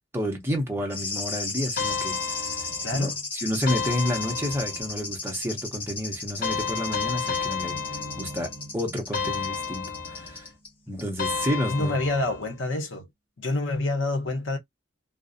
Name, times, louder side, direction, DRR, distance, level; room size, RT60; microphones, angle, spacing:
voice 1, 0.1-2.5 2.9-10.5 10.9-12.0, equal, 10° right, 0.6 m, -30 dB
sound 1, 0.9-10.7 11.0-11.1, left 3 dB, 25° left, 1.1 m, -35 dB
sound 2, 1.8-3.1 3.7-5.0 6.4-8.6 9.1-10.4 11.2-12.5, left 6 dB, 45° left, 0.6 m, -32 dB
voice 2, 2.8-3.2 11.6-13.1 13.4-14.6, left 2 dB, 70° left, 0.8 m, -27 dB
sound 3, 7.6-11.9, right 1 dB, 80° right, 0.5 m, -47 dB
2.5 x 2.0 x 2.4 m
head